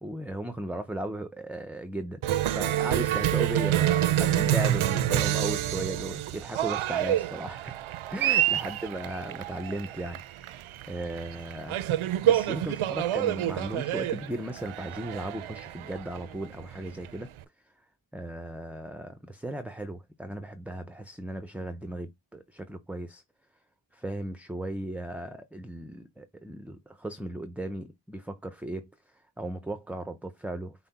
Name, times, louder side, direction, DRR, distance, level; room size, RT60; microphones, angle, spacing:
voice 1, 0.0-2.2 2.5-7.7 8.1-11.8 12.2-17.3 17.6-17.7 18.1-23.2 23.9-30.9, right 1 dB, 5° right, 0.5 m, -36 dB
Cheering, 2.2-17.4, right 12 dB, 75° right, 0.5 m, -28 dB
5.6 x 2.2 x 4.1 m
cardioid pair, 70°, 50 cm